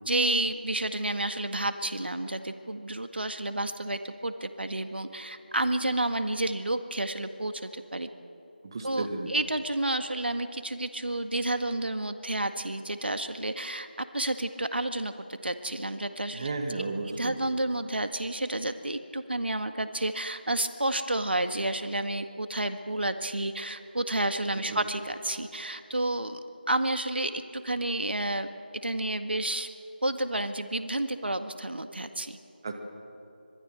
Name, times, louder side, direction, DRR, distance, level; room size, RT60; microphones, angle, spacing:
voice 1, 0.1-8.1 8.8-16.5 17.1-26.4 26.7-28.5 28.8-29.7 30.0-32.4, right 1 dB, 80° right, 8 dB, 1.8 m, -30 dB
voice 2, 8.6-9.3 16.3-17.4 24.7-24.8 32.6-32.7, right 3 dB, 25° right, 4 dB, 1.9 m, -33 dB
25.5 x 23.0 x 7.7 m, 2.8 s
figure-of-eight pair, 170°, 6 cm